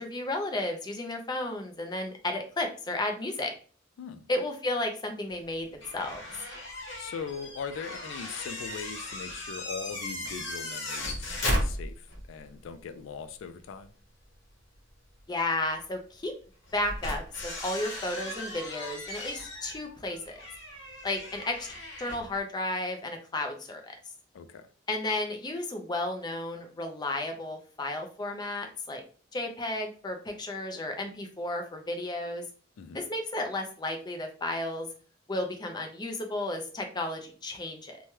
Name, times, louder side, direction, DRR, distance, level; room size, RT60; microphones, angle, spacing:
voice 1, 0.0-3.5 4.3-6.2 15.3-16.3 16.7-20.4 21.0-21.7 22.0-23.9 24.9-29.0 29.3-32.4 32.9-34.9 35.3-38.0, left 2 dB, 20° left, 0.5 m, -33 dB
sound 1, 5.8-12.3 12.6-12.7 14.7-14.8 16.6-22.4, left 1 dB, 65° left, 1.0 m, -36 dB
voice 2, 7.0-13.9 24.3-24.7 32.8-33.0, left 6 dB, 85° left, 0.3 m, -40 dB
3.1 x 2.2 x 2.7 m
head